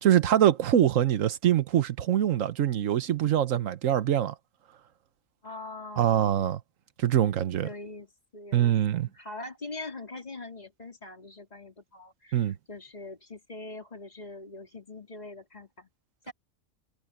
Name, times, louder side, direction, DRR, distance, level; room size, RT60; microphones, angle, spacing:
voice 1, 0.0-4.3 6.0-6.6 7.0-7.7 8.5-9.1 12.3-12.6, right 11 dB, 80° right, 1.3 m, -24 dB
voice 2, 5.4-6.5 7.6-15.9 16.3-16.4, left 2 dB, 30° left, 3.7 m, -43 dB
omnidirectional pair, 1.3 m